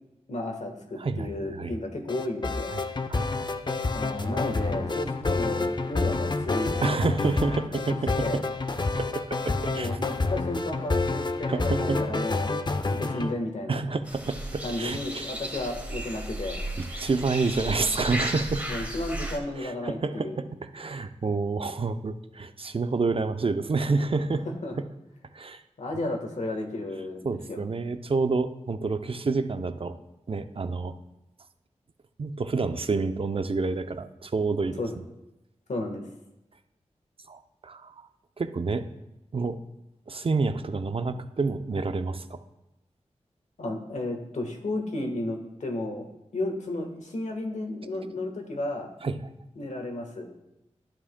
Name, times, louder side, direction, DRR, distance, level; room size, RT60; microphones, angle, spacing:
voice 1, 0.3-2.7 3.9-6.7 7.9-8.4 9.7-12.6 12.9-13.8 14.6-16.7 18.7-20.4 24.6-24.7 25.8-27.6 34.8-34.9 35.7-36.0 43.6-46.1 46.3-48.9 49.6-50.3, left 2 dB, 75° left, 3 dB, 1.3 m, -33 dB
voice 2, 1.0-1.7 2.7-2.8 3.1-3.3 6.8-8.4 9.0-9.9 11.5-12.0 13.7-15.3 16.8-18.6 19.6-20.5 20.7-24.4 25.3-25.6 27.2-29.9 30.3-31.0 32.2-34.8 37.3-38.1 38.4-38.8 39.3-39.6 40.1-42.4 49.0-49.1, right 4 dB, 50° right, 9 dB, 0.6 m, -28 dB
sound 1, 2.1-13.3, left 3 dB, 40° left, 0.6 m, -28 dB
sound 2, 14.1-19.4, right 1 dB, 10° right, 1.6 m, -34 dB
11.0 x 7.2 x 2.2 m, 0.92 s
cardioid pair, 50°, 12 cm